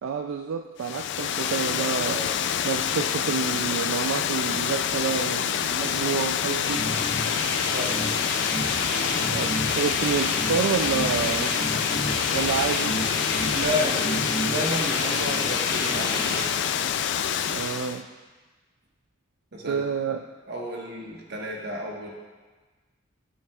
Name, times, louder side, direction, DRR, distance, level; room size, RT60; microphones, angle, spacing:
voice 1, 0.0-2.2 2.6-6.8 9.3-11.5 12.3-13.0 17.5-18.1 19.7-20.2, right 6 dB, 80° right, 5 dB, 0.3 m, -28 dB
Water, 0.8-18.0, left 8 dB, 60° left, 0.3 m, -27 dB
voice 2, 2.1-2.4 7.7-8.0 13.5-16.5 19.5-19.8 20.5-22.1, equal, 55° right, -1 dB, 1.3 m, -32 dB
sound 1, 6.6-16.4, left 1 dB, 20° left, 1.1 m, -31 dB
sound 2, 8.6-13.6, equal, ahead, 1.1 m, -38 dB
12.0 x 6.3 x 2.3 m, 1.3 s
head